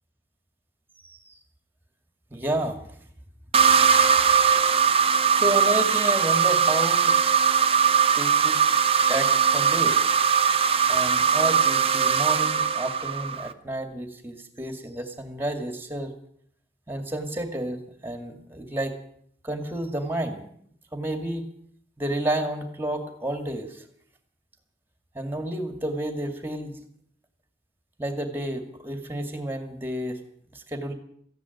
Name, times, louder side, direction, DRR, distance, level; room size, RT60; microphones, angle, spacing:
voice 1, 1.0-1.4 2.3-3.0 3.9-4.3 5.3-7.2 8.1-8.6 9.1-10.1 10.9-16.1 16.9-19.0 19.4-20.4 20.9-21.5 22.0-23.8 25.1-26.8 28.0-30.2 30.5-30.9, right 1 dB, 10° right, 7 dB, 2.2 m, -31 dB
sound 1, 3.5-13.5, right 6 dB, 30° right, 0.7 m, -20 dB
14.5 x 10.5 x 9.3 m, 0.65 s
head